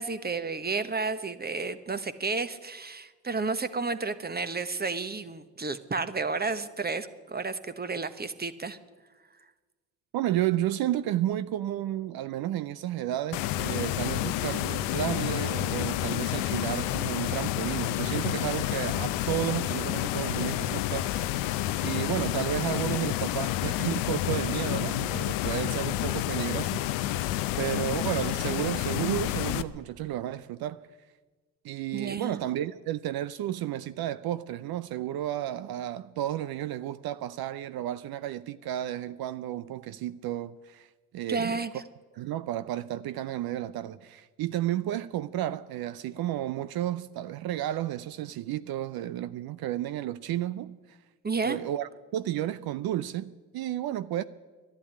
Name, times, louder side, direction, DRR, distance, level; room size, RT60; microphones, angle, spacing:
voice 1, 0.0-8.8 31.9-32.4 41.3-41.7 51.2-51.6, right 4 dB, 20° right, 1.1 m, -31 dB
voice 2, 10.1-21.5 21.8-27.3 27.6-30.8 31.6-40.9 41.1-41.6 42.1-51.0 51.4-54.2, right 12 dB, 60° right, 0.6 m, -32 dB
sound 1, 13.3-29.6, left 14 dB, 75° left, 0.7 m, -29 dB
11.0 x 11.0 x 9.9 m
hypercardioid pair, 55°, 42 cm